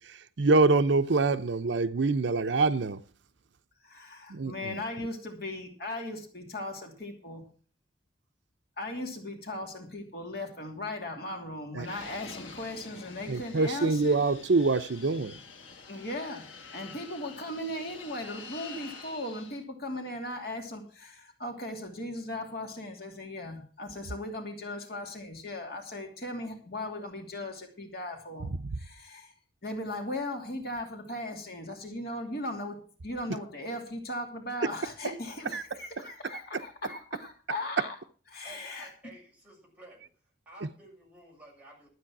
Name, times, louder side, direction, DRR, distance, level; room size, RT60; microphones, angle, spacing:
voice 1, 0.0-3.0 4.3-4.8 11.7-11.9 13.3-15.4 28.6-28.8 35.5-35.6, right 3 dB, 75° right, 0.6 m, -25 dB
voice 2, 3.8-7.4 8.8-14.2 15.9-16.4 16.7-28.5 28.8-29.3 29.6-37.9 38.3-38.9, left 1 dB, 50° left, 2.7 m, -38 dB
Fixed-wing aircraft airplane, 11.8-19.6, left 4 dB, 90° left, 1.4 m, -47 dB
voice 3, 38.4-41.9, right 1 dB, 10° right, 6.5 m, -52 dB
13.0 x 8.5 x 6.0 m
head